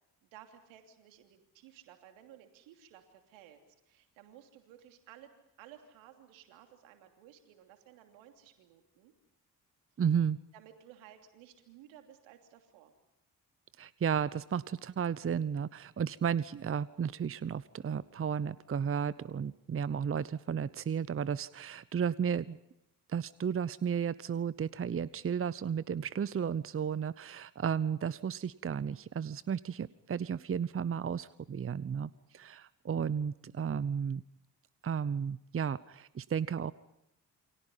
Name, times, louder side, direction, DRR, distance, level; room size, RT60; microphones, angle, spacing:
voice 1, 0.2-3.6 3.8-5.3 5.6-9.1 10.5-12.9, right 11 dB, 75° right, 5 dB, 3.1 m, -56 dB
voice 2, 10.0-10.4 13.8-22.6 23.1-34.2 34.8-36.7, right 7 dB, 30° right, 19 dB, 0.8 m, -33 dB
28.5 x 25.0 x 5.6 m, 0.83 s
hypercardioid pair, 40°, 47 cm